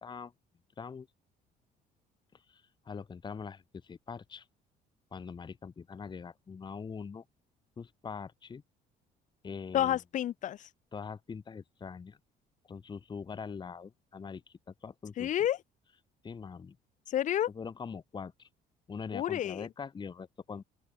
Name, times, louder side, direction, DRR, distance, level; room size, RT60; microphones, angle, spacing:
voice 1, 0.0-0.3 0.8-1.1 2.5-4.4 5.1-7.2 7.8-8.6 9.4-10.0 10.9-12.2 12.7-15.3 16.2-16.8 17.5-18.5 18.9-20.6, left 5 dB, 25° left, 1.1 m, -43 dB
voice 2, 9.7-10.7 15.2-15.6 17.1-17.5 19.1-19.7, left 11 dB, 50° left, 0.5 m, -30 dB
cardioid pair, 110°, 17 cm